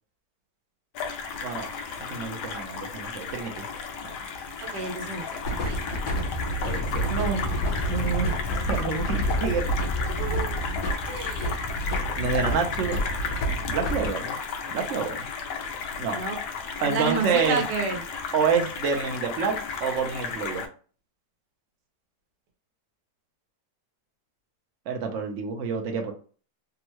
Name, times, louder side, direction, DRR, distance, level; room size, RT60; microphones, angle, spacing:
sound 1, 0.9-20.7, left 5 dB, 85° left, 1.2 m, -34 dB
voice 1, 2.1-3.7 4.0-4.1 6.6-7.4 7.9-8.4 8.7-9.7 12.2-13.0 13.7-14.4 14.7-15.3 16.0-16.2 16.8-17.6 18.3-20.6 24.9-26.1, right 5 dB, 60° right, 4 dB, 0.9 m, -28 dB
voice 2, 4.6-5.2 5.6-5.8 10.1-10.6 11.1-11.6 16.1-16.4 16.8-18.0, right 5 dB, 90° right, 3 dB, 1.4 m, -30 dB
sound 2, 5.4-14.1, right 1 dB, 65° left, 1.6 m, -29 dB
3.5 x 2.1 x 3.0 m, 0.39 s
omnidirectional pair, 1.8 m